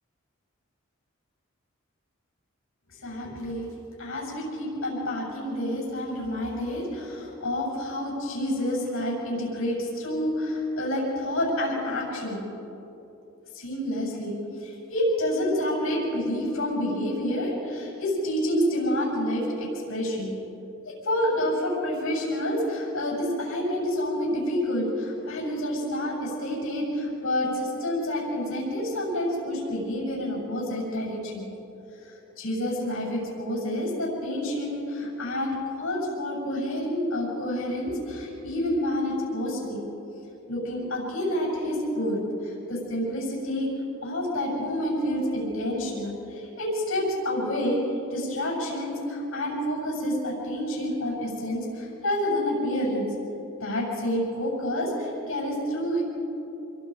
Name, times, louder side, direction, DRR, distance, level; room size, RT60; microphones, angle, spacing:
voice 1, 3.0-3.7 4.0-12.5 13.5-14.4 14.6-20.4 20.8-31.5 32.4-39.8 40.5-43.7 44.0-47.8 48.1-53.1 53.6-56.0, left 1 dB, 85° left, -3 dB, 7.0 m, -28 dB
27.0 x 22.5 x 5.0 m, 3.0 s
head